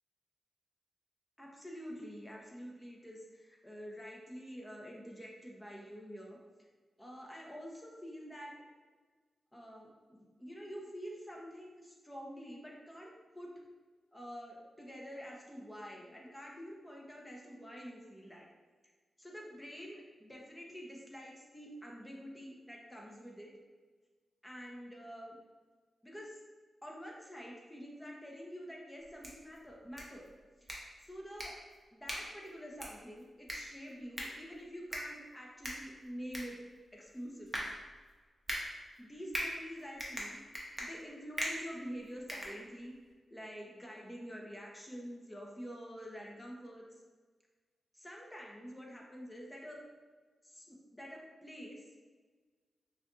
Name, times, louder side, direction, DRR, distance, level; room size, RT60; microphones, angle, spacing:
voice 1, 1.4-6.4 7.0-8.5 9.5-13.5 14.1-18.5 19.2-23.5 24.4-25.4 26.0-26.4 26.8-30.3 30.6-30.7 31.0-31.6 31.9-36.6 36.9-37.7 38.7-40.4 40.8-43.0 43.3-47.0 47.9-49.8 50.4-51.8, equal, 15° left, -2 dB, 1.0 m, -47 dB
sound 1, 29.0-43.1, equal, 20° right, 1.1 m, -44 dB
5.8 x 2.6 x 2.7 m, 1.4 s
cardioid pair, 60°, 0 cm